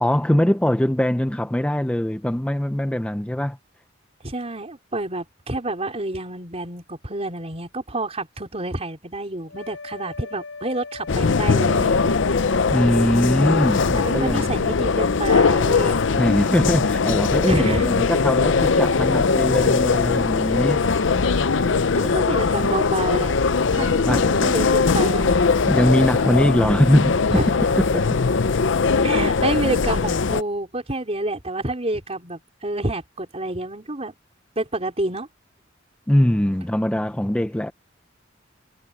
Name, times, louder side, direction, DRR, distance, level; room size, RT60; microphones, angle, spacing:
voice 1, 0.0-3.6 12.7-14.5 16.2-20.8 24.1-24.3 25.7-27.2 27.8-28.2 36.1-37.7, left 1 dB, 5° left, 0.5 m, -21 dB
voice 2, 4.2-12.2 13.9-16.0 17.5-17.9 20.8-20.9 21.5-23.3 23.7-25.3 27.3-27.5 29.0-34.1 34.6-35.3, right 2 dB, 30° right, 4.3 m, -28 dB
sound 1, 9.4-20.1, left 4 dB, 85° left, 4.1 m, -39 dB
sound 2, 11.1-30.4, left 4 dB, 65° left, 0.6 m, -20 dB
head